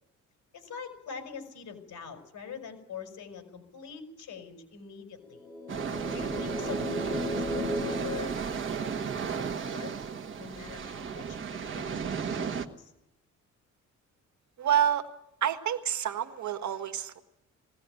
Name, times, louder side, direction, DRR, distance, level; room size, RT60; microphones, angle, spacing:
voice 1, 0.5-5.5 6.1-8.4 8.8-9.9 10.4-12.9, left 6 dB, 70° left, 6 dB, 5.0 m, -44 dB
sound 1, 5.3-9.2, left 2 dB, 5° left, 7.1 m, -36 dB
sound 2, 5.7-12.7, right 6 dB, 40° right, 1.4 m, -34 dB
voice 2, 14.6-15.0 15.4-17.2, right 9 dB, 65° right, 8 dB, 1.7 m, -28 dB
20.5 x 17.5 x 9.0 m, 0.88 s
cardioid pair, 125°, 31 cm